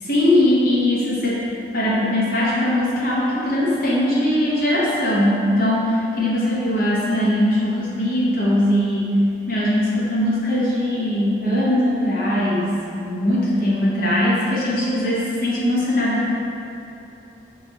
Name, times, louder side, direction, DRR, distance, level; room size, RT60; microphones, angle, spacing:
voice 1, 0.0-1.4 1.7-9.1 9.5-16.3, left 1 dB, 55° left, -7 dB, 0.8 m, -20 dB
5.7 x 3.1 x 2.8 m, 2.9 s
head